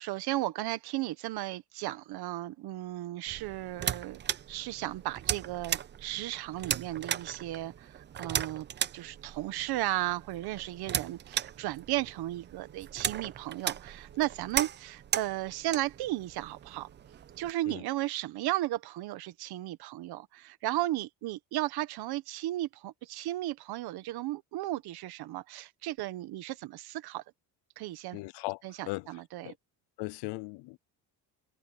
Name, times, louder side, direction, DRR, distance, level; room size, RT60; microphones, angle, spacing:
voice 1, 0.0-4.2 4.5-8.7 8.9-16.9 17.4-27.2 27.8-28.2 28.6-29.5, right 15 dB, 65° right, 1.3 m, -35 dB
sound 1, 3.3-17.5, right 9 dB, 25° right, 0.6 m, -37 dB
voice 2, 28.1-28.6 28.9-29.1 29.4-29.5 30.0-30.8, left 23 dB, 75° left, 0.6 m, -37 dB
cardioid pair, 175°, 41 cm